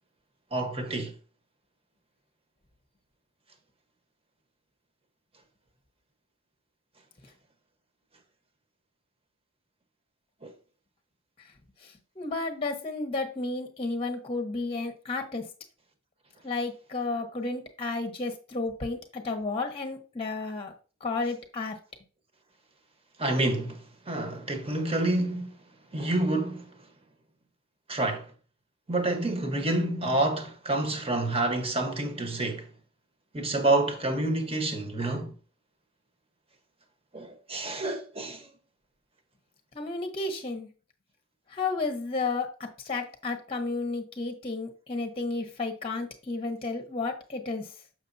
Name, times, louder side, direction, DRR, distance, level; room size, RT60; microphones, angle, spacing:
voice 1, 0.5-1.1 10.4-10.5 23.2-25.6 25.9-26.7 27.9-28.3 28.9-32.7 33.3-35.3 37.1-38.5, right 2 dB, 25° right, 1.1 m, -28 dB
voice 2, 11.8-15.4 16.4-20.7 21.0-21.8 39.7-40.7 41.5-47.7, left 3 dB, 25° left, 0.9 m, -32 dB
6.7 x 6.1 x 2.7 m
head